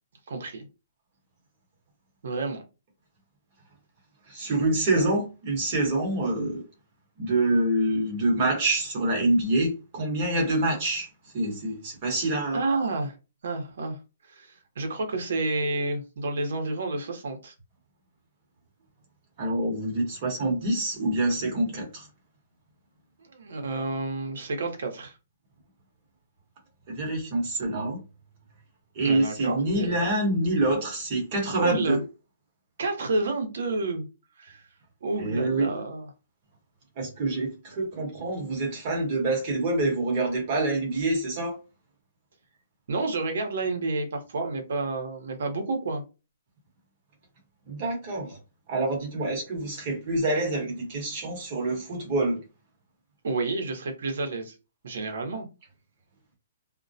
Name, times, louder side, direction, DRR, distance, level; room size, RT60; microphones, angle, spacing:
voice 1, 0.3-0.7 2.2-2.6 12.5-13.2 13.4-14.0 14.3-17.5 23.2-25.2 29.0-30.0 31.6-32.0 32.8-34.1 34.4-34.7 35.0-36.1 42.9-46.0 53.2-54.5 54.8-55.5, right 3 dB, 65° right, 0.8 m, -30 dB
voice 2, 4.3-6.6 7.2-11.1 11.3-12.6 19.4-22.1 26.9-28.0 28.9-32.0 35.2-35.7 37.0-41.6 47.7-48.4 48.7-52.4, right 2 dB, 30° right, 1.0 m, -26 dB
2.2 x 2.1 x 2.6 m
hypercardioid pair, 175°, 0 cm